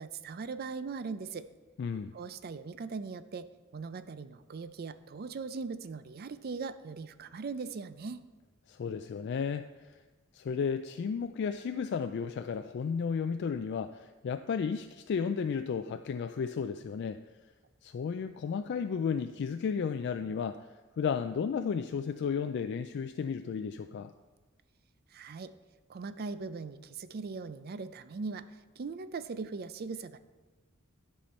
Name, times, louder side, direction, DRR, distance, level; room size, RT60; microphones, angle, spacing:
voice 1, 0.0-1.5 2.1-3.5 3.7-8.2 25.1-25.5 25.9-30.2, right 4 dB, 50° right, 13 dB, 0.4 m, -40 dB
voice 2, 1.8-2.1 8.7-9.9 10.3-17.2 17.8-20.7 21.0-24.1, left 6 dB, 60° left, 8 dB, 0.3 m, -33 dB
11.5 x 5.6 x 4.3 m, 1.3 s
head